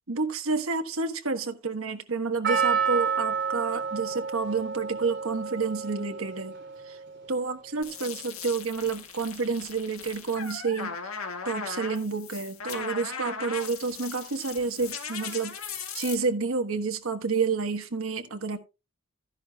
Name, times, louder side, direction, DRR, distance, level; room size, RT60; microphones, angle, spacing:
voice 1, 0.1-6.5 6.9-7.0 7.3-10.9 11.4-18.6, right 4 dB, 70° right, 1.3 m, -29 dB
Percussion, 2.4-6.8 7.1-7.2, right 6 dB, 55° right, 3.0 m, -29 dB
sound 1, 7.8-16.2, left 6 dB, 80° left, 1.8 m, -38 dB
13.5 x 10.5 x 2.3 m
head